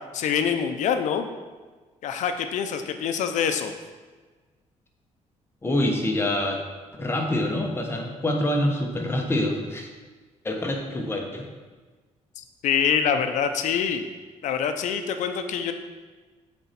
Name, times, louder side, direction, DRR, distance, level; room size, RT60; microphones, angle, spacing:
voice 1, 0.1-1.3 2.0-3.7 12.4-14.0 14.4-15.7, left 7 dB, 75° left, 7 dB, 0.7 m, -25 dB
voice 2, 5.6-6.6 7.0-9.9 10.4-11.5, left 1 dB, 20° left, 2 dB, 1.2 m, -26 dB
8.4 x 4.4 x 5.9 m, 1.4 s
cardioid pair, 130°, 12 cm